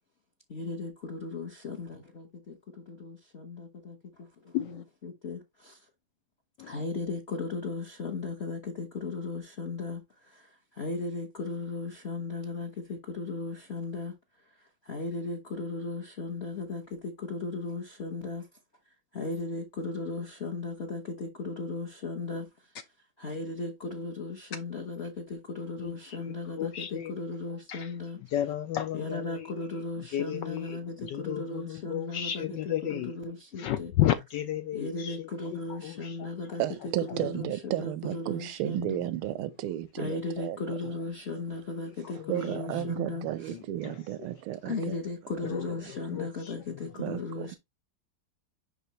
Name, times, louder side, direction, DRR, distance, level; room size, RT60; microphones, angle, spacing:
voice 1, 0.5-5.9 6.6-14.1 14.5-18.5 19.1-22.7 23.2-28.2 28.9-33.9 34.7-39.1 40.0-43.6 44.6-47.5, left 3 dB, 40° left, 1.0 m, -36 dB
voice 2, 4.5-4.8 6.6-6.8 25.8-27.1 27.7-29.7 30.0-33.1 33.5-36.6 37.2-37.3 38.6-38.7 41.9-44.6 45.4-46.9, left 12 dB, 75° left, 1.0 m, -34 dB
voice 3, 36.6-40.6 42.3-45.0 45.4-45.6 46.1-46.2 47.0-47.6, right 13 dB, 90° right, 1.5 m, -33 dB
10.5 x 3.5 x 2.9 m
omnidirectional pair, 2.3 m